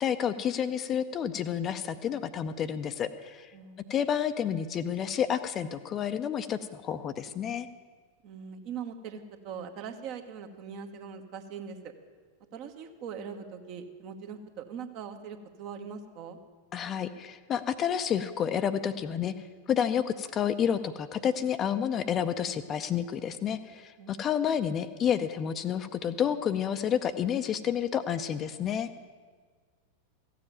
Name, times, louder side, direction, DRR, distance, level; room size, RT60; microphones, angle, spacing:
voice 1, 0.0-3.5 3.9-7.7 16.7-19.3 19.7-28.9, left 8 dB, 30° left, 10 dB, 0.6 m, -30 dB
voice 2, 3.5-3.9 8.2-11.9 12.5-16.4 24.0-24.3, right 7 dB, 40° right, 6 dB, 1.2 m, -41 dB
15.0 x 7.6 x 9.2 m, 1.5 s
figure-of-eight pair, 90°, 0 cm